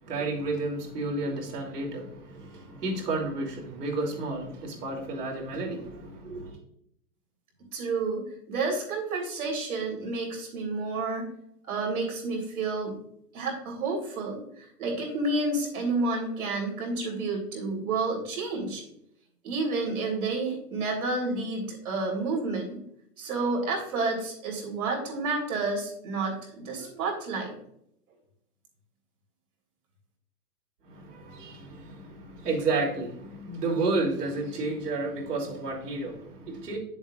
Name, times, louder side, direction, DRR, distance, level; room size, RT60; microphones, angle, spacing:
voice 1, 0.0-6.6 30.9-36.8, right 3 dB, 80° right, 3.1 m, -31 dB
voice 2, 7.7-11.3 11.7-12.9 13.3-18.8 19.4-22.8 23.2-27.5, right 3 dB, 65° right, 3.6 m, -30 dB
10.5 x 7.3 x 2.5 m
hypercardioid pair, 175°, 46 cm